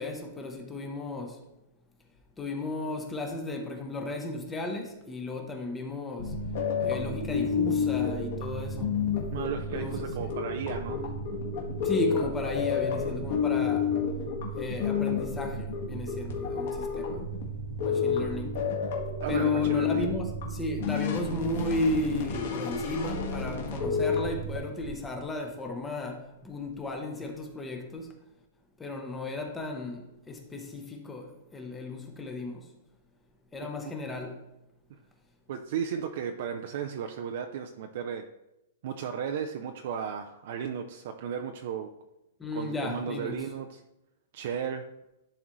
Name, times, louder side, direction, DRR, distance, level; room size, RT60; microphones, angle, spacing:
voice 1, 0.0-1.4 2.4-6.4 6.8-9.0 9.7-10.3 10.9-11.2 11.8-13.9 14.6-17.3 17.8-18.6 19.3-28.1 28.8-32.7 33.5-34.4 42.4-43.4, left 1 dB, 10° left, 0.7 m, -35 dB
sound 1, 6.2-24.6, left 5 dB, 45° left, 1.6 m, -30 dB
voice 2, 9.3-11.0 19.2-20.1 33.6-33.7 34.9-35.0 35.5-38.3 38.8-41.9 42.5-43.8 44.3-44.9, right 7 dB, 45° right, 0.4 m, -34 dB
11.0 x 3.9 x 3.1 m
hypercardioid pair, 175°, 0 cm